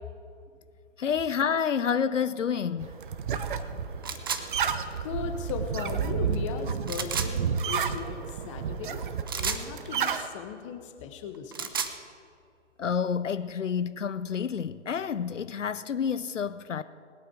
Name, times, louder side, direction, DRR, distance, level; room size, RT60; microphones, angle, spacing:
voice 1, 1.0-3.0 12.8-16.8, left 7 dB, 80° left, 14 dB, 0.6 m, -29 dB
sound 1, 2.8-10.3, right 7 dB, 45° right, 0.9 m, -31 dB
sound 2, 4.0-4.4 6.9-7.3 9.3-9.6 11.3-12.0, right 6 dB, 20° right, 0.4 m, -31 dB
voice 2, 5.0-11.7, left 7 dB, 25° left, 7 dB, 1.1 m, -38 dB
20.0 x 8.7 x 4.8 m, 2.3 s
figure-of-eight pair, 130°, 37 cm